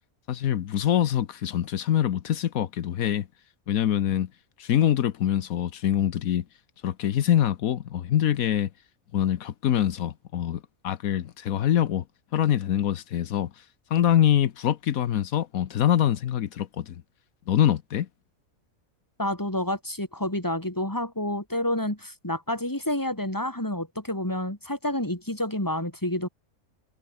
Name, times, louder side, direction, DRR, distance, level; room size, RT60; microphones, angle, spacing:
voice 1, 0.3-3.3 3.7-4.3 4.6-6.4 6.8-8.7 9.1-12.0 12.3-13.6 13.9-17.0 17.5-18.1, left 10 dB, 85° left, 1.3 m, -24 dB
voice 2, 19.2-26.3, left 1 dB, 15° left, 3.9 m, -29 dB
omnidirectional pair, 1.5 m